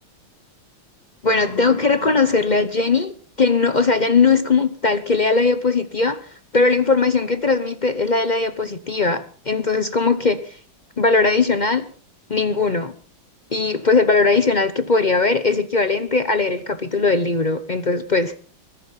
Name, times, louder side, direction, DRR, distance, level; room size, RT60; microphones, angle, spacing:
voice 1, 1.2-6.2 6.5-10.6 11.0-11.9 12.3-12.9 13.5-18.3, left 4 dB, 55° left, 12 dB, 0.5 m, -19 dB
21.5 x 11.5 x 5.7 m, 0.43 s
omnidirectional pair, 2.2 m